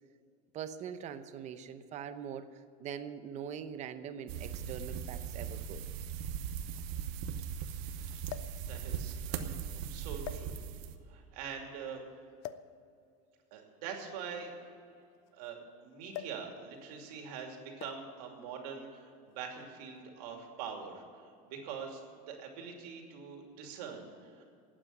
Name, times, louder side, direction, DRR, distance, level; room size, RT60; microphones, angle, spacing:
voice 1, 0.5-5.8, right 8 dB, 35° right, 11 dB, 0.8 m, -43 dB
sound 1, 4.3-10.9, right 8 dB, 65° right, 1.2 m, -39 dB
sound 2, 4.5-4.6 5.7-5.8 6.1-6.2 8.3-8.7 9.5-9.7 10.2-10.9 12.4-12.8 13.9-15.5 16.1-16.5 16.8-17.0 17.8-18.2 19.1-19.4, left 12 dB, 60° left, 0.6 m, -45 dB
voice 2, 8.7-10.6 11.1-12.0 13.5-14.7 15.3-24.4, right 6 dB, 85° right, 2 dB, 2.8 m, -44 dB
12.0 x 8.9 x 9.5 m, 2.4 s
cardioid pair, 150°, 20 cm